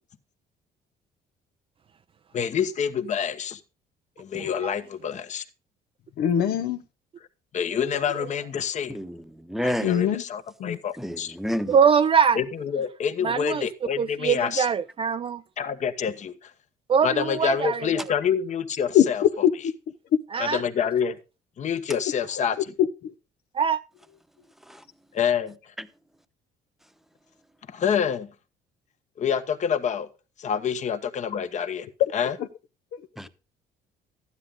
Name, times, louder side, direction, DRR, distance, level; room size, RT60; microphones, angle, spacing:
voice 1, 2.3-3.6 4.2-5.4 7.5-9.0 9.6-11.3 12.4-14.7 15.6-16.5 17.0-19.5 20.4-21.2 21.6-22.6 25.1-25.7 27.7-28.3 29.2-30.1 30.4-31.9 32.1-32.3, left 7 dB, 45° left, 1.3 m, -27 dB
voice 2, 4.4-4.7 11.7-12.4 13.2-13.7 14.0-15.4 16.9-18.0 20.3-20.6 23.5-23.8, right 7 dB, 35° right, 0.5 m, -23 dB
voice 3, 6.2-6.8 9.8-10.2 10.6-10.8 18.9-19.0 19.4-19.7 22.8-23.1 32.9-33.0, left 9 dB, 65° left, 0.9 m, -22 dB
voice 4, 8.9-10.0 11.0-11.8 24.7-24.8 25.8-25.9 33.2-33.3, equal, ahead, 1.0 m, -30 dB
12.5 x 9.8 x 3.7 m
cardioid pair, 110°, 17 cm